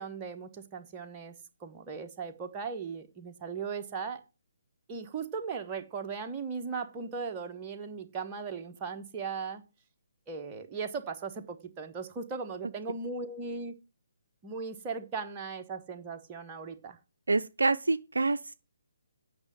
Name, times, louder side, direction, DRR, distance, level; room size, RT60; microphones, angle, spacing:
voice 1, 0.0-1.3 1.6-4.2 4.9-9.6 10.3-13.8 14.4-17.0, right 5 dB, 20° right, 1.2 m, -38 dB
voice 2, 17.3-18.5, right 3 dB, 65° right, 0.5 m, -27 dB
8.8 x 5.9 x 7.6 m
figure-of-eight pair, 140°, 0 cm